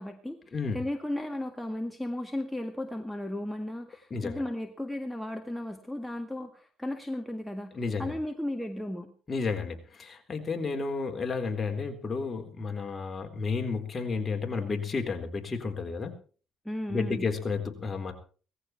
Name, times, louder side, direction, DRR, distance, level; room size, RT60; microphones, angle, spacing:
voice 1, 0.0-0.4 0.7-9.1 16.7-17.3, left 1 dB, 5° left, 5 dB, 1.8 m, -35 dB
voice 2, 4.1-4.4 7.7-8.2 9.3-16.1 16.9-18.1, left 4 dB, 30° left, 4 dB, 4.0 m, -32 dB
18.0 x 14.5 x 4.5 m, 0.39 s
supercardioid pair, 85°, 0 cm